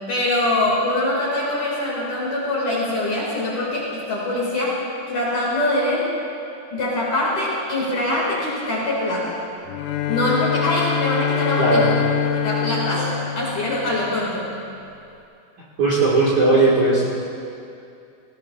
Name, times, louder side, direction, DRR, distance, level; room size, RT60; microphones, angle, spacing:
voice 1, 0.1-4.8 5.1-6.1 6.7-9.4 10.1-11.9 12.4-14.4, left 1 dB, 50° left, -6 dB, 3.0 m, -23 dB
Bowed string instrument, 9.7-14.3, left 8 dB, 80° left, 2.9 m, -25 dB
voice 2, 11.6-11.9 15.8-17.1, right 2 dB, 55° right, -8 dB, 2.2 m, -17 dB
19.5 x 18.5 x 2.4 m, 2.6 s
omnidirectional pair, 5.8 m